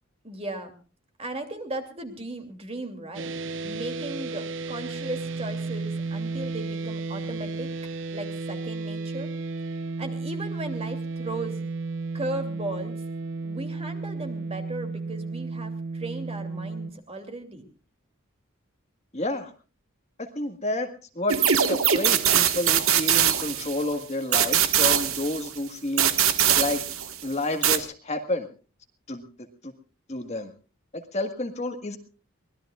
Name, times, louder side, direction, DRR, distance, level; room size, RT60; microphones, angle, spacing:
voice 1, 0.2-0.7 1.2-3.3 3.6-7.7 8.1-9.3 10.0-11.7 12.1-13.0 13.4-17.6, right 2 dB, 30° right, 5 dB, 2.8 m, -36 dB
sound 1, 3.1-16.9, right 3 dB, 60° right, 0.8 m, -33 dB
voice 2, 19.1-19.5 20.2-20.9 21.2-21.4 21.7-26.1 26.6-26.8 27.2-28.5 29.1-29.2 29.6-29.7 30.1-30.5 30.9-32.0, left 2 dB, 30° left, 5 dB, 1.7 m, -30 dB
sound 2, 21.3-23.9 24.3-25.6 26.0-27.2 27.6-27.8, right 9 dB, 80° right, 1.6 m, -22 dB
24.0 x 19.5 x 2.4 m, 0.37 s
head